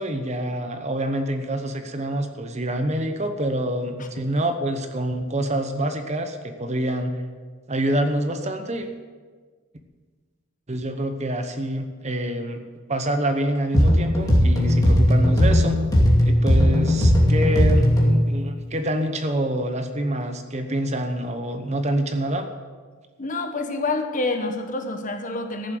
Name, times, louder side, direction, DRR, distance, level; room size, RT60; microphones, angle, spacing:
voice 1, 0.0-7.2 7.7-8.9 10.7-15.8 16.2-22.5, right 1 dB, 30° right, 7 dB, 1.0 m, -26 dB
sound 1, 13.7-18.3, left 1 dB, 15° left, 2.4 m, -17 dB
voice 2, 23.2-25.8, left 2 dB, 40° left, 5 dB, 1.3 m, -27 dB
14.5 x 7.5 x 7.7 m, 1.5 s
head